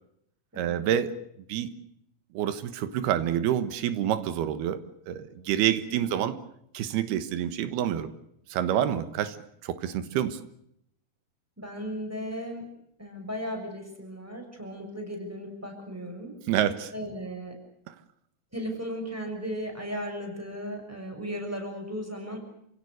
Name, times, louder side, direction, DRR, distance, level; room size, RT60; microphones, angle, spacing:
voice 1, 0.6-1.2 1.5-1.7 2.3-4.8 5.1-6.4 6.7-8.1 8.5-9.4 9.6-10.4 16.5-16.9 17.9-18.0, right 10 dB, 90° right, 3.3 m, -27 dB
voice 2, 11.6-12.6 13.0-16.3 16.9-17.6 18.5-22.4, equal, 5° right, 6.4 m, -36 dB
29.5 x 17.0 x 8.0 m
omnidirectional pair, 4.5 m